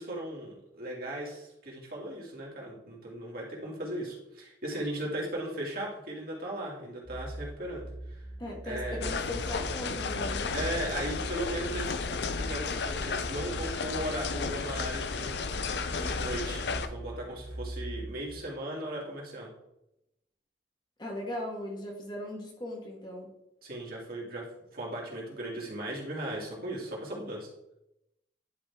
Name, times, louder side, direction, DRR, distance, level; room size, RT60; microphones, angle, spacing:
voice 1, 0.0-8.2 8.6-9.0 10.5-12.0 12.3-19.5 23.6-27.5, right 1 dB, 55° right, -4 dB, 2.6 m, -37 dB
sound 1, 7.0-18.3, right 1 dB, 15° right, 1.0 m, -42 dB
voice 2, 8.4-10.5 21.0-23.3, left 1 dB, 25° left, 0 dB, 1.5 m, -38 dB
sound 2, 9.0-16.9, left 4 dB, 65° left, 0.6 m, -33 dB
11.0 x 5.1 x 3.6 m, 0.86 s
head